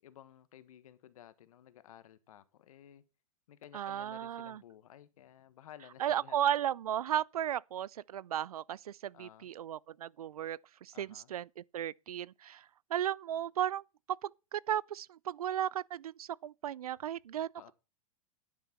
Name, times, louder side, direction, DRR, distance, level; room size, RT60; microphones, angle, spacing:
voice 1, 0.0-3.0 3.5-6.4 9.1-9.5 10.9-11.3 17.5-17.7, left 11 dB, 70° left, 1.5 m, -55 dB
voice 2, 3.7-4.6 6.0-12.6 12.9-17.7, right 10 dB, 85° right, 0.5 m, -35 dB
10.5 x 9.3 x 4.4 m
hypercardioid pair, 115°, 18 cm